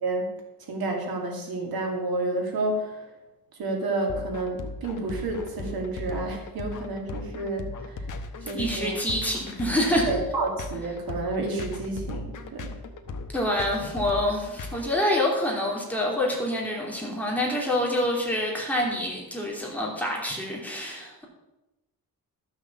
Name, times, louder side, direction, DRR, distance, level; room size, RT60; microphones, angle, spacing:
voice 1, 0.7-2.9 3.6-8.0 8.5-8.9 10.1-12.7, right 2 dB, 85° right, 1 dB, 2.6 m, -30 dB
sound 1, 4.1-14.8, left 3 dB, 60° left, 1.2 m, -37 dB
voice 2, 8.4-10.1 13.3-21.2, left 1 dB, 5° left, -3 dB, 2.9 m, -27 dB
13.0 x 6.4 x 7.3 m, 1.0 s
wide cardioid pair, 155°, 36 cm